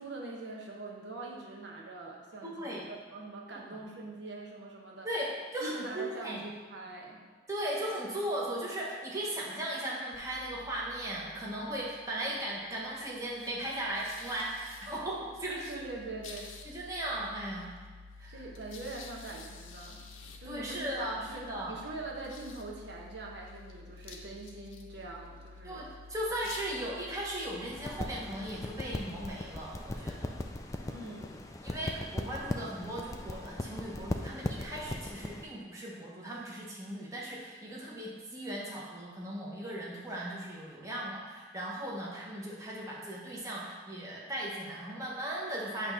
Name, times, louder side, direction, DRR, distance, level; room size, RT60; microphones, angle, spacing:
voice 1, 0.0-5.1 5.6-7.2 15.7-16.5 18.3-20.0 20.4-25.8 26.8-26.9 30.9-31.4, right 2 dB, 65° right, -2 dB, 0.9 m, -43 dB
voice 2, 2.4-2.8 3.7-3.8 5.0-6.4 7.5-15.9 16.6-17.7 18.2-18.4 20.4-21.8 25.6-30.4 31.6-45.9, right 1 dB, 15° right, -5 dB, 1.0 m, -37 dB
sound 1, 10.1-30.0, left 4 dB, 90° left, 0.8 m, -51 dB
sound 2, 27.7-35.4, left 1 dB, 15° left, 0.3 m, -39 dB
8.6 x 3.0 x 5.6 m, 1.4 s
head